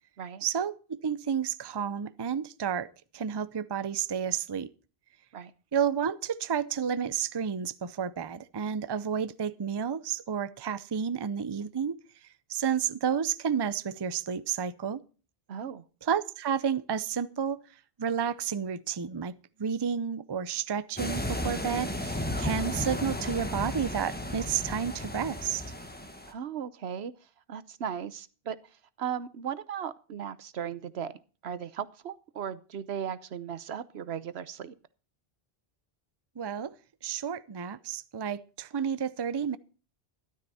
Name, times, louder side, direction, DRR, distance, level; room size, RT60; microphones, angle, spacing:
voice 1, 0.4-4.7 5.7-12.0 12.5-15.0 16.0-17.6 18.0-25.6 36.4-36.7 37.0-39.6, right 7 dB, 30° right, 0.5 m, -31 dB
voice 2, 15.5-15.8 26.2-27.1 27.5-28.6 29.0-34.7, right 8 dB, 80° right, 1.1 m, -37 dB
sound 1, 21.0-26.3, left 1 dB, 10° left, 1.5 m, -34 dB
13.5 x 12.0 x 4.2 m
omnidirectional pair, 1.1 m